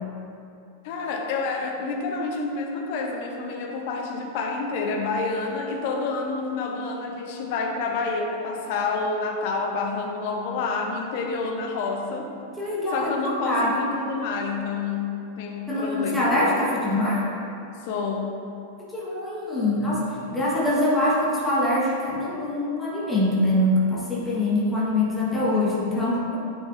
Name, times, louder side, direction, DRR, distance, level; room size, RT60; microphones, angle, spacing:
voice 1, 0.8-12.3 12.9-16.4 17.8-18.4, left 4 dB, 50° left, 1 dB, 0.8 m, -28 dB
voice 2, 12.6-13.9 15.7-17.3 18.9-26.4, left 1 dB, 10° left, -7 dB, 1.4 m, -24 dB
8.7 x 4.8 x 2.6 m, 2.6 s
figure-of-eight pair, 90°, 0 cm